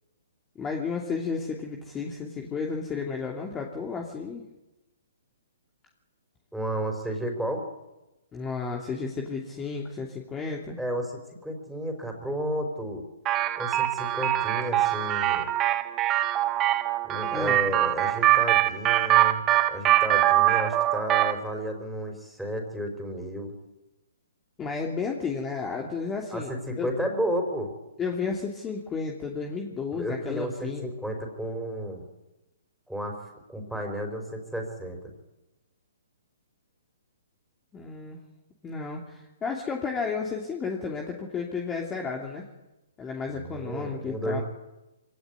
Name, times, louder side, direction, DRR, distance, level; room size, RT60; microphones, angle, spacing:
voice 1, 0.5-4.4 8.3-10.8 17.3-17.6 24.6-26.9 28.0-30.9 37.7-38.2 38.6-42.5 43.0-44.4, left 5 dB, 15° left, 1 dB, 2.8 m, -32 dB
voice 2, 6.5-7.7 10.8-13.0 13.6-15.5 17.0-19.4 19.7-23.5 26.3-27.7 29.9-32.0 32.9-33.2 33.5-35.1 43.3-44.4, right 1 dB, ahead, 3 dB, 5.0 m, -32 dB
sound 1, 13.2-21.4, right 14 dB, 25° right, 1.5 m, -23 dB
23.5 x 17.5 x 9.7 m, 1.0 s
hypercardioid pair, 145°, 0 cm